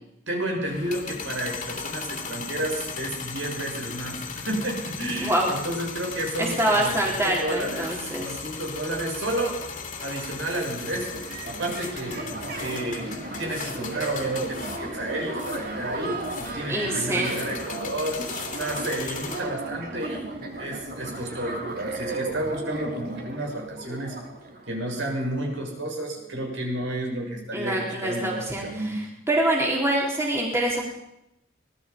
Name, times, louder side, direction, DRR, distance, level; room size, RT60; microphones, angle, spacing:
voice 1, 0.3-9.6 10.0-12.3 12.6-18.2 18.5-24.2 24.7-29.0, right 1 dB, 65° right, 1 dB, 6.9 m, -31 dB
sound 1, 0.7-19.4, left 5 dB, 40° left, 3.1 m, -37 dB
voice 2, 5.2-5.6 6.4-8.4 16.7-17.4 27.5-30.8, right 1 dB, 15° right, -2 dB, 3.9 m, -25 dB
sound 2, 10.7-25.3, right 2 dB, 45° right, 3.5 m, -35 dB
25.0 x 19.5 x 5.4 m, 0.83 s
head